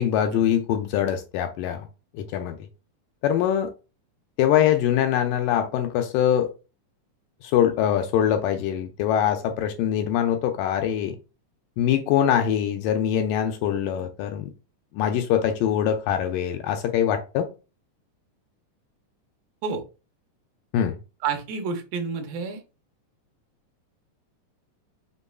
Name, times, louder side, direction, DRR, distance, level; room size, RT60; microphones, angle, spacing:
voice 1, 0.0-1.9 2.1-2.6 3.2-3.7 4.4-6.5 7.4-11.2 11.8-14.5 14.9-17.5 20.7-21.0, left 10 dB, 80° left, 2.1 m, -23 dB
voice 2, 21.2-22.6, right 5 dB, 80° right, 2.6 m, -29 dB
6.5 x 3.0 x 2.3 m
omnidirectional pair, 4.1 m